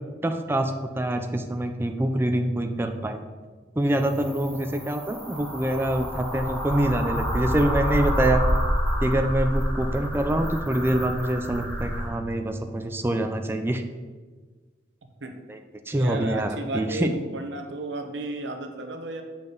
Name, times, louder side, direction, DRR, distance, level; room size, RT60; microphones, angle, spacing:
voice 1, 0.2-3.3 3.8-8.4 9.0-13.8 15.5-15.6 15.9-17.1, right 1 dB, 10° right, 6 dB, 0.4 m, -25 dB
sound 1, 3.9-12.1, equal, 10° left, 1.2 m, -28 dB
voice 2, 15.9-19.2, right 2 dB, 75° right, 5 dB, 0.8 m, -33 dB
7.4 x 5.7 x 3.9 m, 1.4 s
head